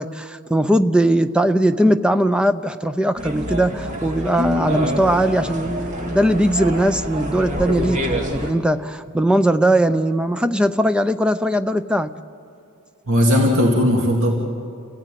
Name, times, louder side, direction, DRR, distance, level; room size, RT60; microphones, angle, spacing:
voice 1, 0.0-12.1, right 1 dB, 5° right, 0.6 m, -19 dB
sound 1, 3.2-8.5, equal, 35° right, 2.0 m, -26 dB
voice 2, 13.1-14.4, left 1 dB, 65° right, 2.6 m, -17 dB
29.0 x 16.5 x 9.2 m
head